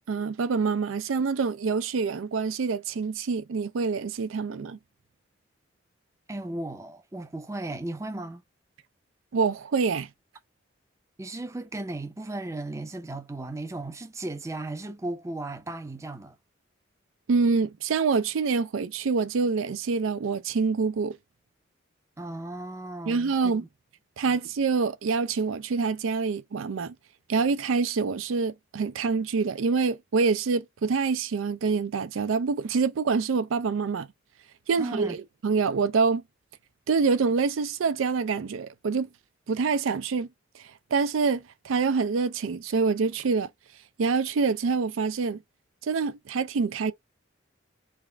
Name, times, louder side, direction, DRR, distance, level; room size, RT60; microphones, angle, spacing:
voice 1, 0.1-4.8 9.3-10.1 17.3-21.2 23.1-23.6 24.2-26.9 27.3-34.1 34.7-36.2 36.9-39.1 39.5-40.3 40.9-43.5 44.0-45.4 45.8-46.9, right 4 dB, 90° right, 0.4 m, -26 dB
voice 2, 6.3-8.4 11.2-16.4 22.2-23.7 24.3-24.4 34.8-35.2, right 2 dB, 15° right, 0.5 m, -36 dB
3.5 x 2.4 x 3.2 m
head